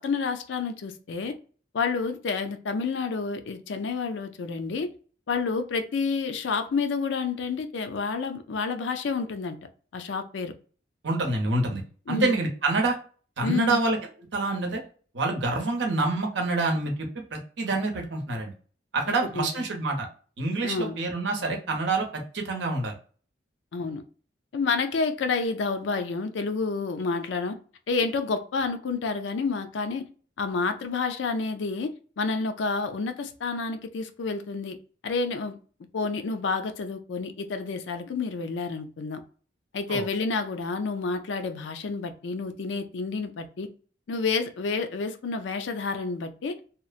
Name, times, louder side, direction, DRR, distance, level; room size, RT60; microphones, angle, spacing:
voice 1, 0.0-1.4 1.7-4.9 5.3-9.6 9.9-10.5 12.1-12.3 13.4-13.8 19.3-19.6 20.6-21.0 23.7-24.0 24.5-27.5 27.9-30.1 30.4-34.8 35.0-35.6 35.9-39.2 39.7-43.7 44.1-46.6, left 4 dB, 80° left, 0.4 m, -29 dB
voice 2, 11.0-11.8 12.1-13.0 13.4-14.0 14.3-14.8 15.1-18.5 18.9-20.1 20.4-22.9 39.9-40.0, right 2 dB, 75° right, 0.8 m, -27 dB
2.8 x 2.0 x 2.4 m
head